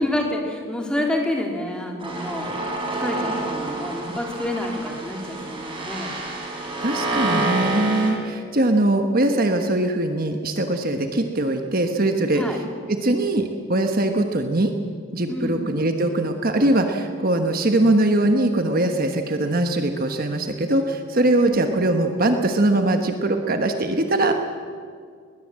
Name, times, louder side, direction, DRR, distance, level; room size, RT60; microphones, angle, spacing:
voice 1, 0.0-2.6 3.0-6.1 7.1-7.6 12.3-12.6 15.3-15.6 21.4-21.7, left 1 dB, 5° left, 1 dB, 2.7 m, -28 dB
sound 1, 2.0-8.1, right 2 dB, 25° right, 4.9 m, -28 dB
voice 2, 6.8-12.6 12.9-14.7 15.1-24.3, right 1 dB, 40° right, 5 dB, 1.3 m, -21 dB
21.0 x 20.5 x 7.6 m, 2.1 s
head